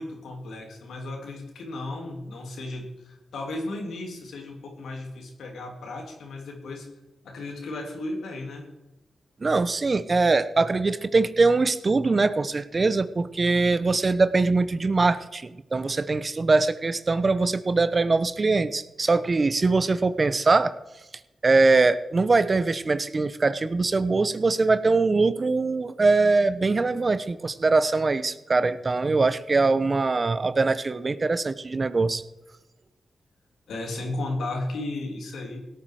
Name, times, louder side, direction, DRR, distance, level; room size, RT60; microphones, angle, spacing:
voice 1, 0.0-6.9 7.2-8.7 33.7-35.6, left 2 dB, 80° left, 2 dB, 3.0 m, -34 dB
voice 2, 9.4-20.7 21.4-32.2, right 3 dB, 45° right, 14 dB, 0.9 m, -22 dB
17.0 x 9.1 x 4.9 m, 1.0 s
supercardioid pair, 50°, 0 cm